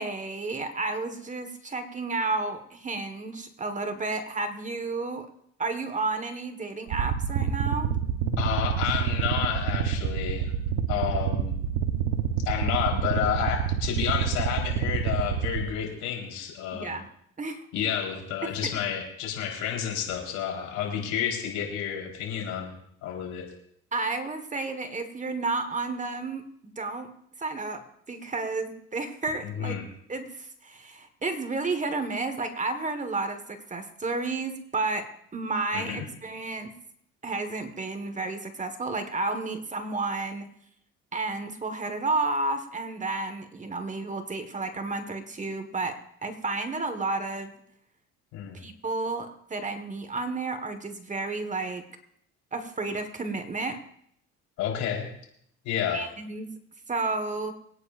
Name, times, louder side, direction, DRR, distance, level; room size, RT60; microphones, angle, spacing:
voice 1, 0.0-5.3 5.6-7.9 16.7-17.1 17.4-17.6 18.4-18.7 23.9-26.4 26.8-27.1 27.4-29.8 30.1-36.7 37.2-40.5 41.1-47.6 48.5-51.8 52.5-53.8 55.9-56.5 56.9-57.5, right 3 dB, 25° right, 8 dB, 1.5 m, -31 dB
sound 1, 6.9-15.6, right 8 dB, 85° right, 1.2 m, -28 dB
voice 2, 8.4-10.5 10.9-11.5 12.5-17.0 17.7-22.8 23.0-23.4 29.4-29.9 35.7-36.0 48.3-48.6 54.6-55.1 55.6-56.0, left 8 dB, 80° left, -1 dB, 4.2 m, -30 dB
24.5 x 9.8 x 2.6 m, 0.70 s
supercardioid pair, 90°, 29 cm